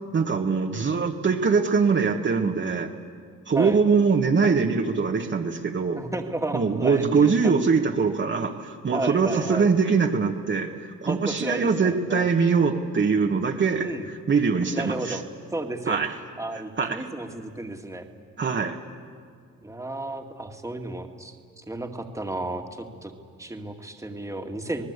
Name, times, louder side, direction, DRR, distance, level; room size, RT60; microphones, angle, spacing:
voice 1, 0.1-2.9 3.5-6.0 6.5-15.2 15.9-16.1 16.8-17.1 18.4-18.8, right 5 dB, 40° right, 1 dB, 1.6 m, -23 dB
voice 2, 6.0-7.5 8.9-9.7 11.1-12.3 13.8-14.1 14.7-15.2 15.5-16.0 16.4-18.1 19.6-23.1 23.4-24.8, right 2 dB, 10° right, 3 dB, 2.2 m, -33 dB
27.5 x 19.5 x 8.3 m, 2.1 s
cardioid pair, 90°, 30 cm